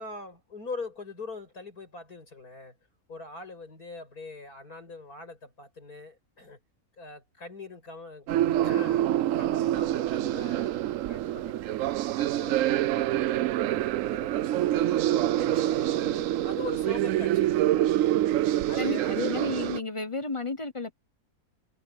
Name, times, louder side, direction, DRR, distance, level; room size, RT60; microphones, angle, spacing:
voice 1, 0.0-2.8 3.1-6.6 7.0-8.3 8.6-9.1 9.4-10.7 11.1-11.8 12.2-14.8 15.2-17.9 18.7-19.4, left 3 dB, 80° left, 7.6 m, -42 dB
sound 1, 8.3-19.8, right 13 dB, 70° right, 0.9 m, -26 dB
voice 2, 18.8-20.9, left 3 dB, 25° left, 0.9 m, -32 dB
omnidirectional pair, 1.6 m